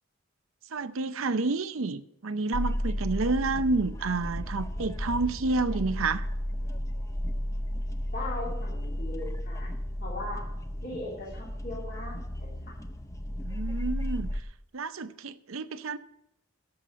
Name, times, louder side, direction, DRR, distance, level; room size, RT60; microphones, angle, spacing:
voice 1, 0.7-6.2 13.4-14.3 14.7-16.0, right 3 dB, 70° right, 0.7 m, -29 dB
sound 1, 2.5-14.4, equal, 15° left, 0.6 m, -33 dB
voice 2, 8.1-9.7 10.0-10.4 10.8-12.1, left 2 dB, 45° left, 3.4 m, -38 dB
11.0 x 7.3 x 7.4 m
head